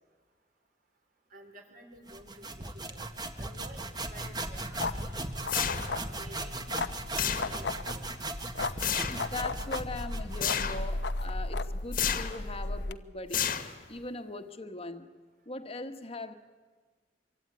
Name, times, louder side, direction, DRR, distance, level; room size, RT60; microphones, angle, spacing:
voice 1, 1.3-3.1 3.3-5.3 5.8-8.1, right 1 dB, 50° right, 3 dB, 4.9 m, -52 dB
sound 1, 2.1-10.7, right 2 dB, 25° right, 1.7 m, -38 dB
sound 2, 4.2-12.9, left 2 dB, 75° left, 1.0 m, -36 dB
sound 3, 5.5-6.1 7.2-7.8 8.8-9.3 10.4-10.9 11.9-12.5 13.3-14.0, left 8 dB, 50° left, 1.7 m, -31 dB
voice 2, 9.1-13.5 13.9-15.1 15.4-16.3, left 2 dB, 35° left, 7 dB, 1.5 m, -40 dB
26.5 x 23.5 x 9.4 m, 1.5 s
head